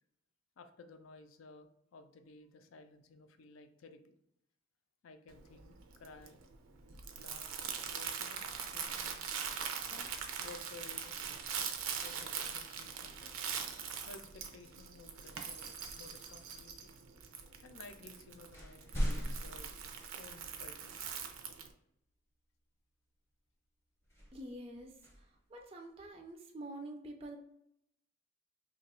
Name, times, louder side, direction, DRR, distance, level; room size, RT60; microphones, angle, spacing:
voice 1, 0.6-4.1 5.0-6.4 7.2-7.4 7.8-9.3 9.9-10.1 10.4-11.2 12.0-13.3 14.0-16.9 17.5-19.8 20.1-21.0, left 3 dB, 80° left, 7 dB, 0.4 m, -55 dB
Crumpling crinkling, 5.3-21.7, right 7 dB, 90° right, 0.5 m, -42 dB
sound 1, 18.5-20.8 21.3-21.4 24.0-26.2, equal, 10° left, 0.6 m, -42 dB
voice 2, 24.3-27.4, right 1 dB, 30° right, 2 dB, 0.3 m, -47 dB
2.9 x 2.2 x 4.1 m, 0.76 s
head